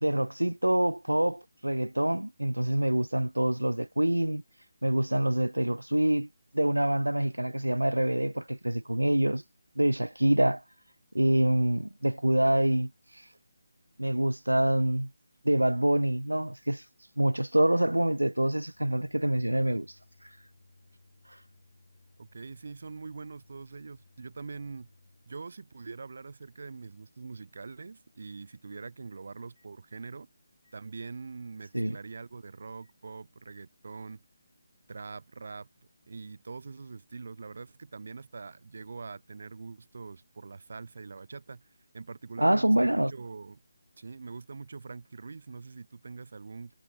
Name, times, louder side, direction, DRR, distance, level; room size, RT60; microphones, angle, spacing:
voice 1, 0.0-4.4 4.8-6.3 6.5-9.4 9.8-10.6 11.1-12.9 14.0-15.1 15.4-16.8 17.2-19.9 31.7-32.0 42.4-43.1, right 1 dB, 90° right, 0.4 m, -26 dB
Microwave oven, 16.6-29.1 29.6-29.7 30.6-30.8 31.7-31.9 32.8-33.0, left 2 dB, 70° left, 7.5 m, -64 dB
voice 2, 22.2-24.9 25.3-30.3 30.7-34.2 34.9-35.7 36.1-43.6 44.0-46.7, right 4 dB, 55° right, 2.2 m, -43 dB
figure-of-eight pair, 150°, 0 cm